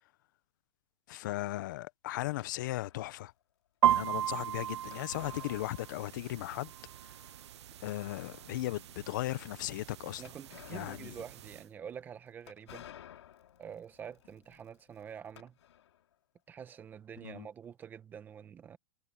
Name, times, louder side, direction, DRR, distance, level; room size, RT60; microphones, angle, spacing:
voice 1, 1.1-3.3 3.8-6.7 7.8-10.2 10.7-11.1 17.2-17.5, left 16 dB, 45° left, 0.7 m, -37 dB
sound 1, 2.4-3.2 4.9-6.3 6.5-6.6 7.2-7.3 7.9-8.7 10.2-16.1, left 11 dB, 75° left, 3.3 m, -55 dB
sound 2, 3.8-11.6, right 11 dB, 75° right, 0.6 m, -36 dB
voice 2, 10.2-12.9 13.6-15.6 16.5-18.8, right 8 dB, 15° right, 1.2 m, -47 dB
hypercardioid pair, 165°, 15 cm